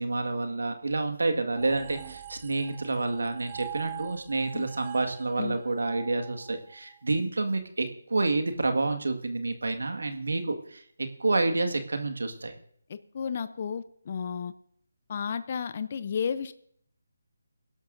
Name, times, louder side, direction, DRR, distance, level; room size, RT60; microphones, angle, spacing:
voice 1, 0.0-12.5, right 3 dB, 80° right, 6 dB, 1.8 m, -29 dB
sound 1, 1.5-7.0, right 14 dB, 25° right, 0.5 m, -44 dB
voice 2, 12.9-14.5 15.1-16.5, left 7 dB, 40° left, 13 dB, 0.6 m, -33 dB
23.0 x 12.0 x 2.6 m, 0.63 s
figure-of-eight pair, 160°, 0 cm